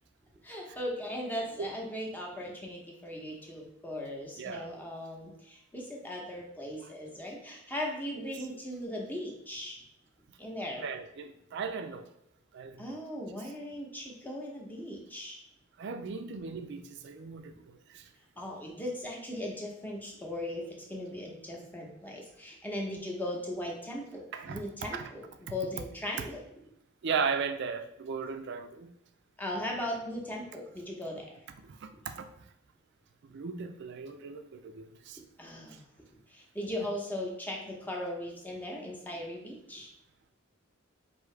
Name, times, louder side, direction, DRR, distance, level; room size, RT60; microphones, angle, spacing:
voice 1, 0.4-9.8 10.4-10.9 12.8-15.4 18.4-26.4 29.4-31.5 35.4-35.8 36.3-39.9, left 1 dB, 10° left, -2 dB, 0.8 m, -38 dB
voice 2, 4.4-4.7 10.8-12.1 12.5-12.8 15.8-17.5 17.9-18.0 24.3-24.6 24.9-25.0 27.0-28.9 31.6-32.3 33.2-35.2, right 5 dB, 55° right, 8 dB, 0.4 m, -36 dB
4.6 x 2.7 x 3.2 m, 0.80 s
head